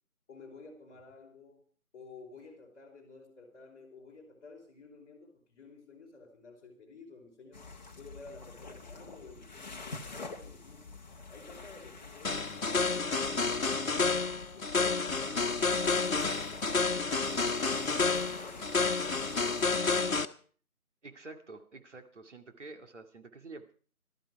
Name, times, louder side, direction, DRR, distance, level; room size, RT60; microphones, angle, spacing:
voice 1, 0.3-1.6 1.9-7.6 8.0-10.9 11.3-14.1, left 3 dB, 15° left, -6 dB, 3.9 m, -52 dB
sound 1, 7.5-19.7, left 3 dB, 30° left, 1.4 m, -48 dB
sound 2, 12.2-20.3, left 4 dB, 65° left, 1.3 m, -30 dB
voice 2, 21.0-23.7, right 3 dB, 55° right, 5 dB, 2.3 m, -48 dB
17.5 x 13.0 x 4.8 m, 0.43 s
figure-of-eight pair, 160°, 44 cm